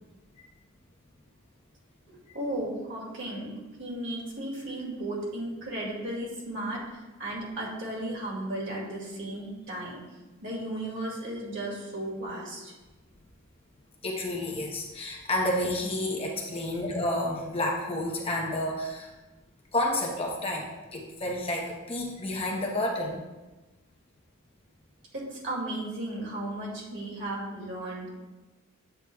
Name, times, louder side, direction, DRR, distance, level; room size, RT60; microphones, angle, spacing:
voice 1, 2.1-10.0 10.4-12.7 25.1-28.1, right 1 dB, 60° right, -4 dB, 2.2 m, -35 dB
voice 2, 14.0-19.1 19.7-23.2, left 1 dB, 25° left, -1 dB, 0.9 m, -30 dB
7.9 x 6.8 x 2.3 m, 1.1 s
head